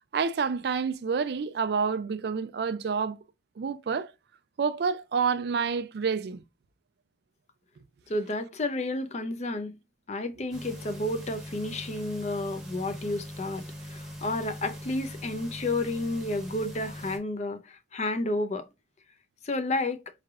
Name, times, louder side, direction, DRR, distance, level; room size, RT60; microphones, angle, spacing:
voice 1, 0.1-3.2 3.6-4.1 4.6-6.4, right 5 dB, 60° right, 0.4 m, -28 dB
voice 2, 8.1-9.7 10.1-13.6 13.9-18.7 19.4-20.0, left 2 dB, 40° left, 0.5 m, -31 dB
sound 1, 10.5-17.2, equal, 5° right, 0.9 m, -41 dB
4.6 x 3.3 x 2.4 m
head